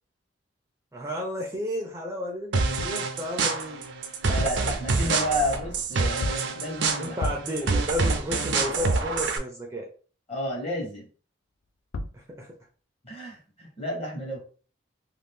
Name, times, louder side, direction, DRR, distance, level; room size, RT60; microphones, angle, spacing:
voice 1, 0.9-3.8 7.0-9.9 12.1-12.5, left 1 dB, 15° right, -1 dB, 0.4 m, -32 dB
sound 1, 2.5-9.4, right 4 dB, 70° right, 0.5 m, -27 dB
sound 2, 2.8-3.1 4.2-4.8 6.2-6.6 7.2-7.6 11.6-11.7 11.9-12.3, left 2 dB, 85° left, 0.4 m, -33 dB
voice 2, 4.3-7.3 10.3-11.1 13.0-14.4, equal, 30° left, -1 dB, 1.0 m, -31 dB
2.6 x 2.5 x 3.5 m, 0.39 s
head